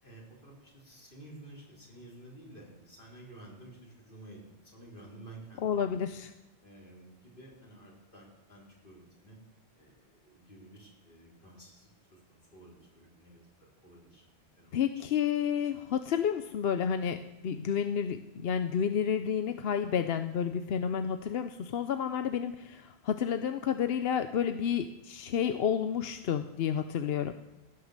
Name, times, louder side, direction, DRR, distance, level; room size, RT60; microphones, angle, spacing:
voice 1, 0.0-5.9 6.6-9.4 9.7-14.8, right 1 dB, 50° left, -3 dB, 4.2 m, -52 dB
voice 2, 5.6-6.3 14.7-27.3, left 8 dB, 70° left, 9 dB, 0.9 m, -30 dB
16.5 x 9.4 x 6.6 m, 0.98 s
omnidirectional pair, 1.1 m